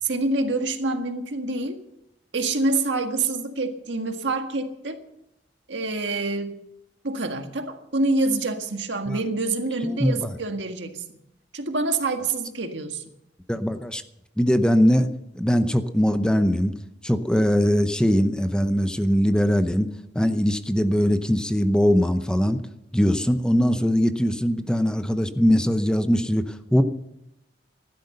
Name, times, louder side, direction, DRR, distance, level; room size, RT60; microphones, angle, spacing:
voice 1, 0.0-1.8 2.3-5.0 5.7-6.5 7.0-11.0 11.5-13.0, right 3 dB, 90° right, 1.7 m, -26 dB
voice 2, 9.9-10.3 13.5-14.0 14.4-15.1 15.3-16.7 17.0-19.9 20.1-22.6 22.9-26.8, equal, 5° left, 0.8 m, -21 dB
15.0 x 12.0 x 6.6 m
head